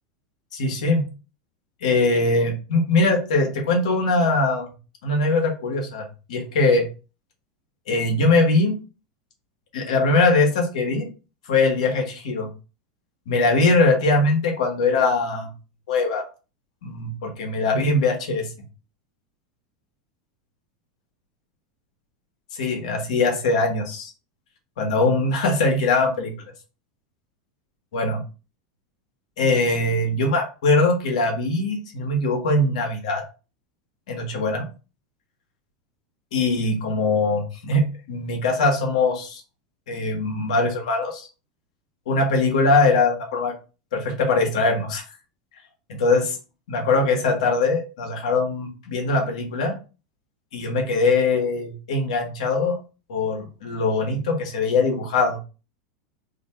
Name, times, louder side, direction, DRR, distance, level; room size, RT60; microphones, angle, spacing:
voice 1, 0.5-1.1 1.8-4.7 5.0-6.0 6.3-6.8 7.9-8.8 9.7-11.1 11.5-12.5 13.3-15.5 15.9-16.2 16.8-18.5 22.5-24.1 24.8-26.3 27.9-28.2 29.4-33.2 34.1-34.6 36.3-39.4 39.9-41.3 42.1-43.5 43.9-45.0 46.0-46.4 46.7-49.7 50.5-52.8 53.1-55.4, left 3 dB, 80° left, 3 dB, 1.2 m, -21 dB
2.8 x 2.5 x 4.3 m, 0.33 s
hypercardioid pair, 110°, 4 cm